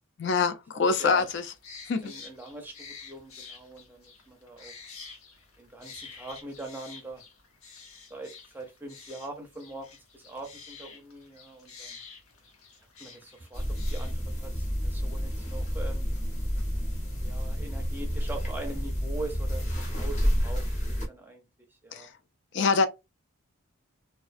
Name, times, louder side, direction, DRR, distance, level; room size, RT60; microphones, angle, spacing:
voice 1, 0.2-1.4 1.9-2.1 21.9-22.1 22.5-22.9, left 4 dB, 55° left, 0.3 m, -25 dB
voice 2, 0.7-1.3 2.0-4.7 5.6-7.2 8.1-9.9 10.1-12.0 13.0-13.6 13.9-16.1 17.2-20.7 21.1-21.5 21.8-22.1, right 2 dB, 10° right, 0.5 m, -42 dB
sound 1, 0.9-14.1, left 5 dB, 80° left, 0.8 m, -49 dB
sound 2, 13.5-21.1, equal, 35° left, 0.7 m, -30 dB
2.3 x 2.2 x 2.4 m
head